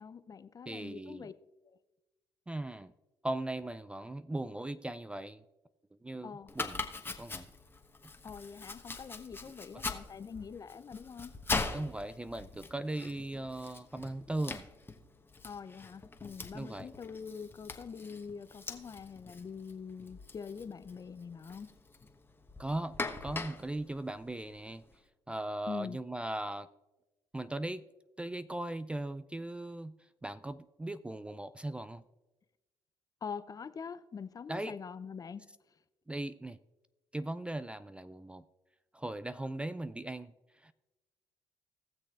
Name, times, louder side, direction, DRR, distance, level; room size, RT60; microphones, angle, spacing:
voice 1, 0.0-1.3 1.7-1.8 6.2-6.5 8.2-11.3 15.4-21.7 25.7-26.0 33.2-35.4, left 6 dB, 40° left, 0.6 m, -44 dB
voice 2, 0.7-1.3 2.5-2.9 3.2-5.4 6.0-6.8 7.2-7.5 11.7-14.7 16.5-16.9 22.6-24.8 25.3-26.7 27.3-27.8 28.2-29.9 30.2-32.0 34.5-34.8 36.1-36.6 37.1-38.4 38.9-40.7, right 1 dB, 10° right, 0.3 m, -38 dB
Domestic sounds home sounds, 6.5-24.9, left 3 dB, 20° left, 1.1 m, -42 dB
18.5 x 6.5 x 2.5 m
supercardioid pair, 65°, 10 cm